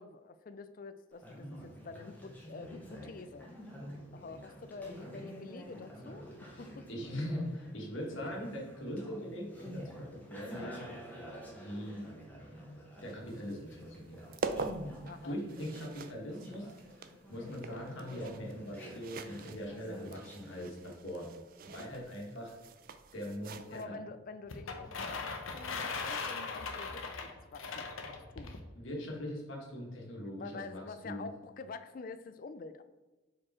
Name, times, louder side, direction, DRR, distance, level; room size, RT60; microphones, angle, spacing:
voice 1, 0.0-3.5 4.1-6.9 8.2-8.3 15.0-15.4 23.7-28.6 30.4-32.8, left 4 dB, 45° left, 10 dB, 0.4 m, -47 dB
Conversation, 1.1-20.8, equal, 10° left, 1.1 m, -49 dB
voice 2, 6.5-10.9 11.5-12.0 13.0-14.2 15.2-16.7 17.0-21.3 21.6-22.6 23.1-24.0 28.7-31.3, equal, 70° left, -1 dB, 1.6 m, -41 dB
sound 1, 13.0-23.8, right 4 dB, 45° right, 0.4 m, -45 dB
sound 2, 24.5-28.6, left 4 dB, 90° left, 0.8 m, -39 dB
4.9 x 4.6 x 4.2 m, 1.2 s
head